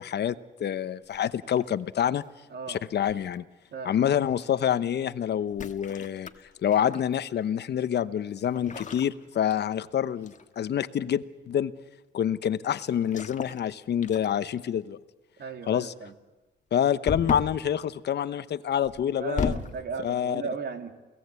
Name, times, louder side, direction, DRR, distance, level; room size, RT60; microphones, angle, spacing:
voice 1, 0.0-2.2 2.7-3.4 3.8-6.3 6.6-11.7 12.1-15.0 15.7-15.9 16.7-19.5 20.0-20.4, left 9 dB, 60° left, 14 dB, 1.0 m, -27 dB
sound 1, 1.1-1.9 3.1-3.4 5.5-7.1 8.5-9.9 10.2-10.5 13.0-13.7 14.0-14.6 17.0-17.6 18.8-19.8, left 5 dB, 40° left, 1.6 m, -35 dB
voice 2, 15.4-16.1 19.2-20.9, right 5 dB, 55° right, 6 dB, 2.9 m, -36 dB
29.0 x 18.5 x 8.3 m, 1.1 s
cardioid pair, 90°, 20 cm